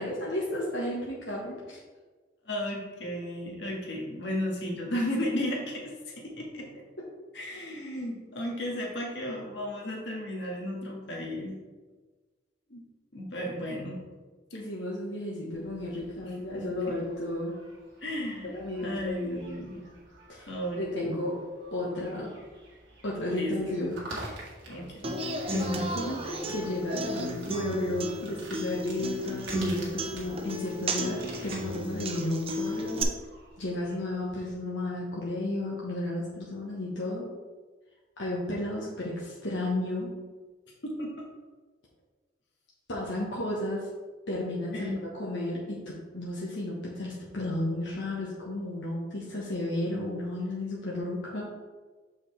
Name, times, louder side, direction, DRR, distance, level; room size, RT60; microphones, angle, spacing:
voice 1, 0.0-1.8 14.5-17.6 18.4-19.4 20.3-20.5 20.8-21.3 21.7-22.3 23.0-24.0 24.2-24.5 25.5-33.1 33.6-37.3 38.2-40.1 42.9-43.9 44.3-51.4, left 1 dB, 90° left, -5 dB, 1.2 m, -33 dB
voice 2, 2.4-6.8 7.3-11.6 12.7-12.8 13.1-14.0 16.2-17.0 18.0-18.5 18.8-19.8 20.5-20.8 23.3-23.8 24.7-25.1 40.8-41.1 44.7-45.0, left 1 dB, 70° left, -1 dB, 1.7 m, -34 dB
sound 1, 15.5-34.5, right 2 dB, 85° right, 1.9 m, -49 dB
Human voice / Acoustic guitar, 25.0-33.0, right 1 dB, 35° right, 0.7 m, -34 dB
6.8 x 5.5 x 3.3 m, 1.4 s
head